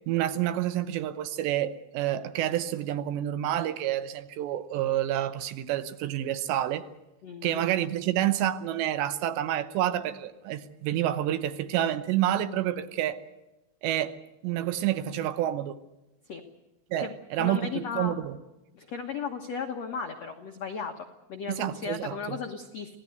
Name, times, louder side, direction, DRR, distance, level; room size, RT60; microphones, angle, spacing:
voice 1, 0.1-6.9 7.4-13.2 13.8-14.2 14.4-15.8 16.9-18.4 21.5-22.4, right 12 dB, 75° right, 3.1 m, -28 dB
voice 2, 7.2-7.6 16.3-16.4 17.0-18.1 18.7-23.0, left 6 dB, 85° left, 1.4 m, -36 dB
26.5 x 17.0 x 8.0 m
omnidirectional pair, 5.3 m